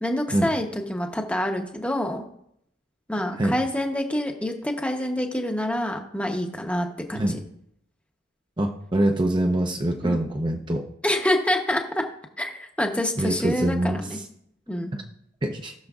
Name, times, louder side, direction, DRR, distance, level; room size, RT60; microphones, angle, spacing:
voice 1, 0.0-2.2 3.1-7.4 10.0-10.2 11.0-12.0 12.4-14.2 14.7-15.0, left 1 dB, 5° left, 3 dB, 0.8 m, -27 dB
voice 2, 8.6-10.9 13.2-14.2 14.9-15.0 15.4-15.7, right 1 dB, 25° right, 3 dB, 0.6 m, -24 dB
18.5 x 6.5 x 2.4 m, 0.73 s
head